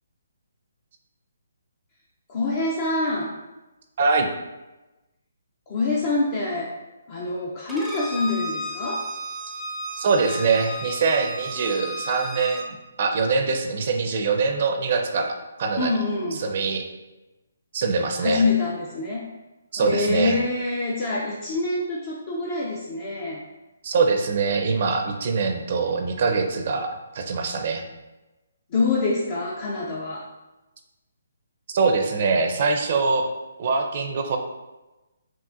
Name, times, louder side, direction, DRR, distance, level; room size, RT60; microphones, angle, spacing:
voice 1, 2.3-3.3 5.7-6.7 7.1-9.1 15.8-16.4 18.2-19.3 19.8-23.4 28.7-30.3, left 3 dB, 40° left, -3 dB, 0.5 m, -25 dB
Bowed string instrument, 7.7-12.7, right 1 dB, 5° right, 0.6 m, -34 dB
voice 2, 10.0-12.7 13.0-15.9 16.3-16.9 17.7-18.4 19.7-20.4 23.8-27.8 31.7-33.3 33.6-34.4, right 4 dB, 50° right, 4 dB, 0.5 m, -23 dB
5.8 x 2.4 x 2.5 m, 1.1 s
figure-of-eight pair, 145°, 0 cm